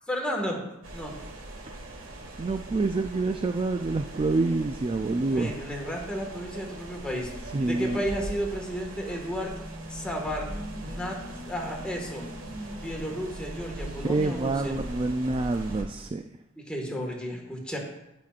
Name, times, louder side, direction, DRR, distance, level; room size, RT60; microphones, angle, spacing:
voice 1, 0.1-0.6 0.9-1.2 5.3-7.3 7.6-9.5 9.9-10.5 10.8-11.2 11.5-12.2 12.8-14.8 16.6-17.8, equal, 5° left, -1 dB, 1.6 m, -33 dB
sound 1, 0.8-15.8, right 1 dB, 85° right, 1.5 m, -41 dB
voice 2, 2.4-5.5 7.5-8.0 14.1-16.3, right 3 dB, 25° right, 7 dB, 0.3 m, -27 dB
sound 2, 8.7-15.0, equal, 20° left, 1.3 m, -44 dB
16.5 x 6.0 x 2.5 m, 0.90 s
head